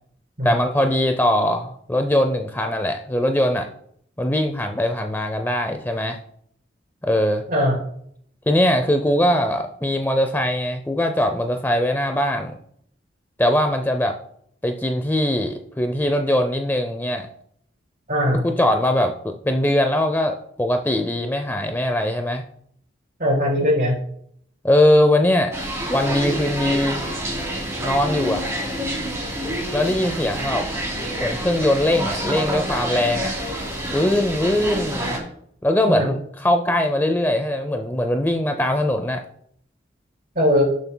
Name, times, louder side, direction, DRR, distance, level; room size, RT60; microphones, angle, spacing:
voice 1, 0.4-3.7 4.2-6.2 7.0-7.4 8.5-12.5 13.4-14.1 14.6-17.3 18.4-22.4 24.6-25.5 25.9-27.0 27.8-28.5 29.7-30.7 31.2-33.3 33.9-35.2 35.6-39.2, left 1 dB, 10° left, 6 dB, 0.5 m, -21 dB
voice 2, 18.1-18.4 23.2-23.9 35.9-36.1 40.4-40.6, equal, 50° right, -2 dB, 3.9 m, -19 dB
sound 1, 25.5-35.2, equal, 15° right, 2.5 m, -27 dB
17.5 x 6.9 x 2.2 m, 0.68 s
head